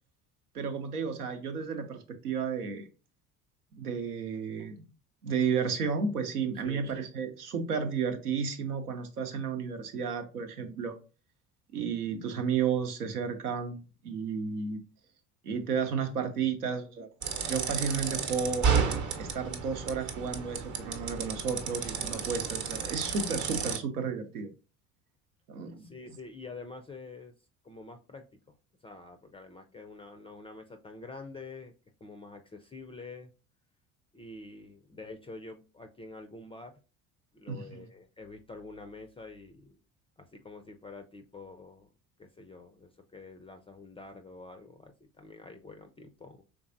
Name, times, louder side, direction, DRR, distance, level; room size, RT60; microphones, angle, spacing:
voice 1, 0.5-2.9 3.7-4.9 5.2-11.0 11.7-14.8 15.4-17.1 17.5-18.7 19.2-24.5 25.5-25.9 37.5-37.9, right 6 dB, 85° right, 0.8 m, -32 dB
voice 2, 6.5-6.9 25.8-27.3 27.6-28.6 28.8-31.7 32.0-33.3 34.1-36.7 37.3-39.8 40.2-41.9 42.2-46.4, left 3 dB, 15° left, 0.4 m, -47 dB
sound 1, 17.2-23.8, right 6 dB, 40° right, 0.8 m, -32 dB
4.6 x 3.4 x 2.5 m
hypercardioid pair, 60°, 44 cm